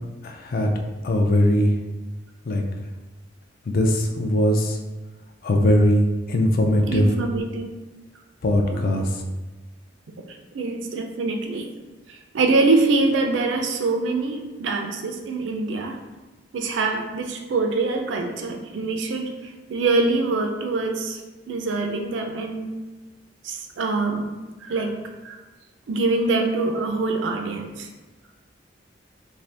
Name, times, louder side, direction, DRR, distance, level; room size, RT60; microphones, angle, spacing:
voice 1, 0.2-0.7 1.0-1.7 2.5-2.6 3.7-4.8 5.4-7.0 8.4-9.1, left 1 dB, 50° left, 3 dB, 0.4 m, -20 dB
voice 2, 6.9-7.7 8.7-9.1 10.5-11.7 12.1-16.0 16.5-19.3 19.7-21.2 21.5-22.7 23.4-24.3 24.6-25.0 25.2-25.4 25.9-27.9, right 3 dB, 75° right, 4 dB, 0.4 m, -24 dB
2.6 x 2.5 x 3.3 m, 1.2 s
head